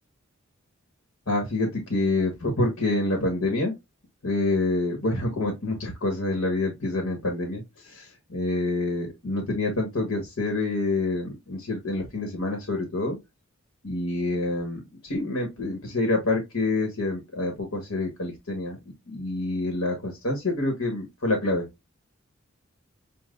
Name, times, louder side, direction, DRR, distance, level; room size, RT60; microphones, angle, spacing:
voice 1, 1.3-3.7 4.2-13.2 13.8-18.8 19.1-21.7, left 2 dB, 75° left, 1.4 m, -27 dB
7.2 x 2.4 x 2.5 m
head